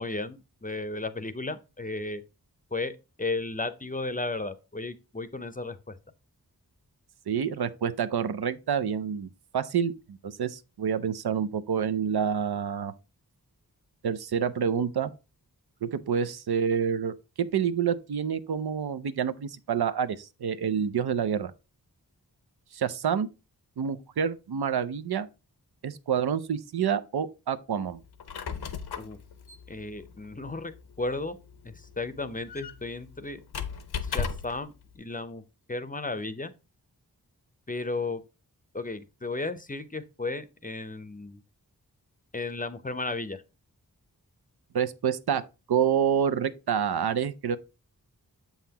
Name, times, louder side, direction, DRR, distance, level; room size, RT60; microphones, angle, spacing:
voice 1, 0.0-2.2 2.7-2.9 3.2-6.0 29.0-29.2 29.7-30.7 31.0-31.4 31.6-33.4 34.0-35.4 35.7-36.5 37.7-38.2 38.7-41.4 42.3-43.4, left 3 dB, 20° left, 0.6 m, -34 dB
voice 2, 7.3-12.9 14.0-15.1 15.8-21.5 22.7-23.3 23.8-25.3 25.8-28.0 44.7-45.4 45.7-47.6, right 7 dB, 80° right, 0.6 m, -28 dB
Squeak, 28.0-34.7, left 6 dB, 85° left, 0.7 m, -37 dB
7.1 x 5.6 x 2.8 m
wide cardioid pair, 60°, 38 cm